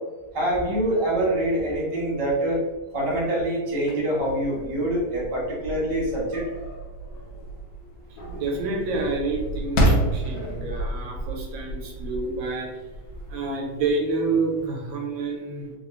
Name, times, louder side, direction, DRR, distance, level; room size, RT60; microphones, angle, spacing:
voice 1, 0.3-2.6 2.9-6.4, right 1 dB, 60° right, -5 dB, 0.3 m, -25 dB
sound 1, 3.7-14.7, right 1 dB, 70° left, 1.3 m, -30 dB
voice 2, 8.2-12.7 13.3-15.8, right 3 dB, 85° right, 1 dB, 1.5 m, -28 dB
3.6 x 2.3 x 3.0 m, 1.1 s
omnidirectional pair, 2.2 m